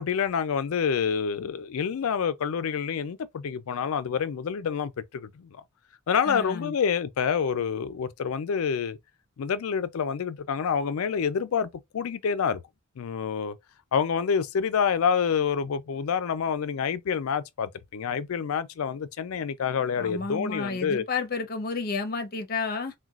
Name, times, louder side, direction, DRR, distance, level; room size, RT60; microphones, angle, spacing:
voice 1, 0.0-5.6 6.1-9.0 9.4-12.6 13.0-13.6 13.9-21.0, left 6 dB, 90° left, 0.4 m, -27 dB
voice 2, 6.2-6.7 20.0-22.9, left 4 dB, 45° left, 0.6 m, -31 dB
3.9 x 2.2 x 2.3 m
head